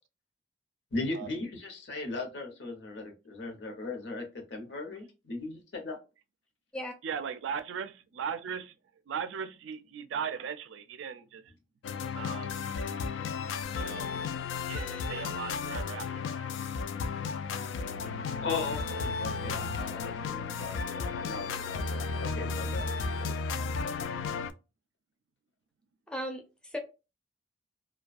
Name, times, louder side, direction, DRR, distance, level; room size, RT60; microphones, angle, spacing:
voice 1, 0.9-6.0 18.4-23.3, left 3 dB, 75° left, 0.8 m, -38 dB
voice 2, 7.0-8.7 9.1-11.4 12.1-12.6 13.8-14.1 14.7-16.4, right 7 dB, 90° right, 0.4 m, -38 dB
sound 1, 11.8-24.5, left 5 dB, 90° left, 0.3 m, -34 dB
voice 3, 26.1-26.8, equal, 5° left, 0.4 m, -37 dB
2.3 x 2.2 x 2.4 m
head